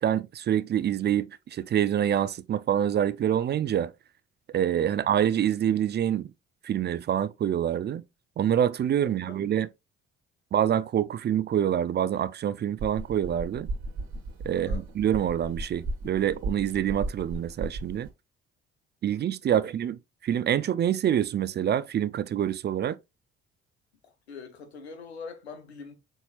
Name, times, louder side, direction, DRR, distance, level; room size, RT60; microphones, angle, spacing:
voice 1, 0.0-3.9 4.5-6.3 6.6-8.0 8.4-9.7 10.5-13.7 14.4-18.1 19.0-23.0, right 10 dB, 35° right, 0.4 m, -26 dB
voice 2, 9.0-9.4 14.5-14.8 19.4-19.7 24.0-26.0, left 4 dB, 90° left, 0.7 m, -44 dB
sound 1, 12.8-18.1, right 2 dB, 65° right, 1.1 m, -35 dB
7.0 x 2.9 x 2.3 m
hypercardioid pair, 45°, 31 cm